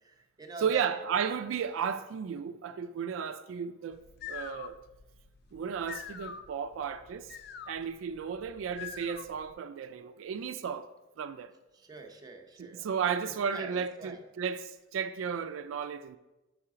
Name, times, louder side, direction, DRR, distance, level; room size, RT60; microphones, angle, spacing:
voice 1, 0.0-0.9 11.7-14.2, right 3 dB, 20° right, 0.6 m, -46 dB
voice 2, 0.6-4.0 4.3-4.8 5.5-7.3 7.7-10.9 11.2-11.5 12.6-16.2, right 7 dB, 80° right, 0.3 m, -34 dB
sound 1, 3.9-9.5, left 8 dB, 55° left, 0.4 m, -46 dB
5.6 x 4.7 x 4.8 m
head